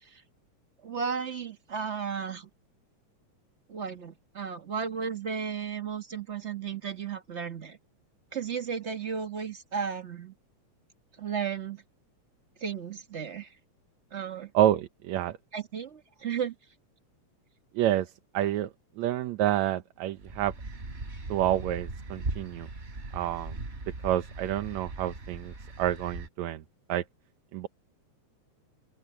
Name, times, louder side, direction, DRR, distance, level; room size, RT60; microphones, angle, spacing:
voice 1, 0.8-2.5 3.7-7.8 8.3-10.3 11.2-11.8 12.6-13.5 14.1-14.5 15.5-16.5, right 7 dB, 40° right, 1.0 m, -34 dB
voice 2, 14.5-15.4 17.7-18.7 19.0-20.5 21.3-22.7 23.1-23.6 24.0-26.6 26.9-27.0 27.5-27.7, right 12 dB, 75° right, 2.2 m, -28 dB
sound 1, 20.2-26.3, right 2 dB, 20° right, 3.6 m, -39 dB
open air
omnidirectional pair, 3.3 m